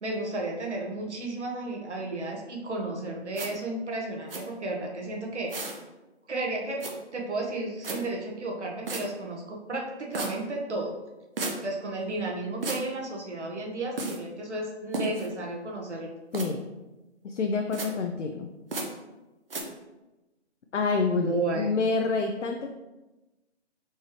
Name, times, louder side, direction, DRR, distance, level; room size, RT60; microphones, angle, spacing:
voice 1, 0.0-5.5 6.3-6.8 7.1-11.0 11.6-16.1 21.1-21.7, right 2 dB, 75° right, 0 dB, 1.2 m, -33 dB
sound 1, 3.3-3.5 4.3-4.4 5.5-5.8 6.8-6.9 7.8-8.0 8.9-9.0 10.1-10.3 11.4-11.5 12.6-12.8 14.0-14.2 14.9-15.3 16.3-16.5 17.7-17.9 18.7-18.9 19.5-19.6, right 3 dB, 55° right, 0.8 m, -32 dB
voice 2, 16.3-16.6 17.2-18.5 20.7-22.7, left 4 dB, 85° left, 4 dB, 0.5 m, -27 dB
4.1 x 3.5 x 3.1 m, 1.1 s
figure-of-eight pair, 155°, 35 cm